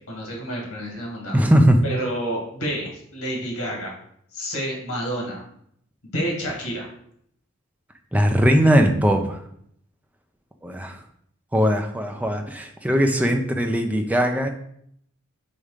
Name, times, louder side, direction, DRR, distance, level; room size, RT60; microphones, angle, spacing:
voice 1, 0.1-1.5 1.8-3.9 4.3-5.4 6.0-6.9, equal, 85° left, -1 dB, 2.3 m, -29 dB
voice 2, 1.3-1.8 8.1-9.4 10.6-11.0 11.5-14.5, equal, 5° right, 4 dB, 0.5 m, -19 dB
5.1 x 4.2 x 5.0 m, 0.69 s
head